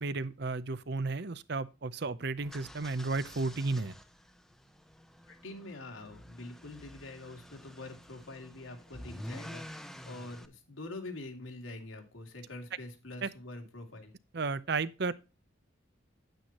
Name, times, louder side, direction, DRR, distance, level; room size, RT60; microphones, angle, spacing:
voice 1, 0.0-3.9 13.2-13.3 14.3-15.1, right 3 dB, 55° right, 0.7 m, -33 dB
sound 1, 2.4-10.5, equal, ahead, 0.7 m, -49 dB
voice 2, 5.2-14.1, left 2 dB, 90° left, 2.8 m, -45 dB
9.7 x 9.0 x 3.0 m
head